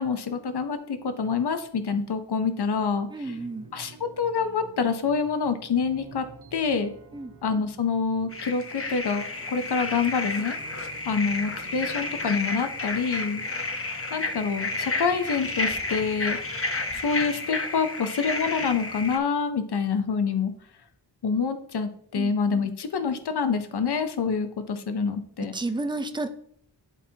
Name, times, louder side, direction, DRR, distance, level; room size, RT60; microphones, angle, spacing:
voice 1, 0.0-3.3 3.7-6.3 6.5-6.9 7.4-10.6 11.1-13.5 14.1-16.4 16.9-20.5 21.2-25.5, left 5 dB, 60° left, 9 dB, 0.8 m, -27 dB
voice 2, 3.1-3.7 7.1-7.3 22.1-22.3 25.5-26.3, right 2 dB, 10° right, 7 dB, 0.5 m, -31 dB
sound 1, 3.2-17.4, right 3 dB, 45° right, 0.9 m, -49 dB
sound 2, 8.3-19.2, left 3 dB, 30° left, 0.7 m, -31 dB
11.0 x 4.2 x 2.8 m, 0.65 s
wide cardioid pair, 80°, 44 cm